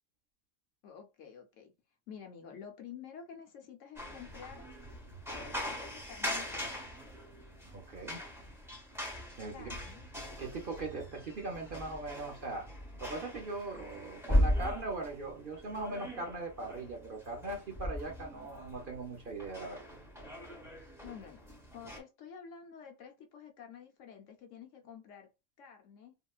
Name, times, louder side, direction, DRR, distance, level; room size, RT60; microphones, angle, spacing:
voice 1, 0.8-1.7 2.1-4.7 5.3-6.8 9.5-10.0 21.0-25.3 25.6-26.1, left 7 dB, 70° left, 0.9 m, -50 dB
sound 1, 4.0-22.0, left 1 dB, ahead, 0.7 m, -38 dB
voice 2, 7.7-8.2 9.4-9.8 10.4-12.7 13.0-19.8, right 2 dB, 45° right, 0.8 m, -40 dB
3.6 x 2.1 x 2.3 m
omnidirectional pair, 1.4 m